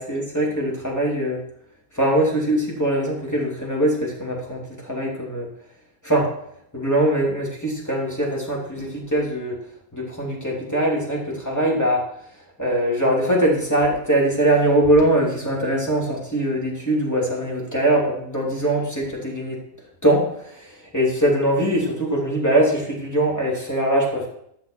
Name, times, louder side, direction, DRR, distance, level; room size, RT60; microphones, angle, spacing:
voice 1, 0.0-1.4 1.9-5.5 6.0-6.3 6.7-9.6 9.9-12.1 12.6-19.6 20.0-24.3, right 1 dB, 10° left, -3 dB, 2.9 m, -22 dB
12.0 x 7.1 x 4.6 m, 0.71 s
omnidirectional pair, 1.5 m